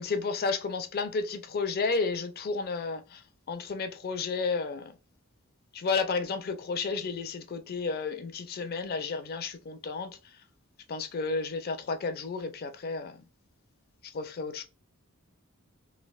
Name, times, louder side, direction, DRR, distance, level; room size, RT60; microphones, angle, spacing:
voice 1, 0.0-3.2 3.5-4.9 5.7-10.2 10.9-13.2 14.0-14.6, left 4 dB, 45° left, 0.5 m, -32 dB
3.3 x 2.4 x 2.3 m
head